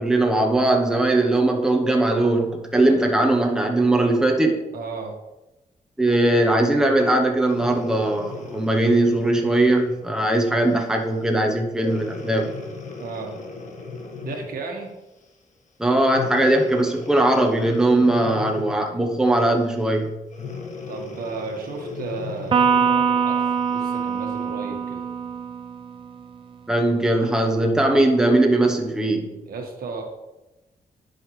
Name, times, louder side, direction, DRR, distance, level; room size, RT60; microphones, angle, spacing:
voice 1, 0.0-4.7 6.0-12.5 15.8-20.1 26.7-29.3, right 1 dB, 5° right, 2 dB, 0.9 m, -20 dB
voice 2, 4.7-5.2 13.0-13.4 14.2-14.9 20.9-25.0 29.4-30.0, right 4 dB, 80° right, 2 dB, 1.5 m, -34 dB
Breathing, 7.4-10.1 10.7-10.9 11.7-14.6 16.1-18.9 20.3-23.0 23.7-23.8, left 4 dB, 55° left, 1.5 m, -37 dB
Electric guitar, 22.5-26.0, right 6 dB, 35° right, 0.5 m, -23 dB
10.5 x 5.6 x 3.2 m, 1.0 s
wide cardioid pair, 145°, 15 cm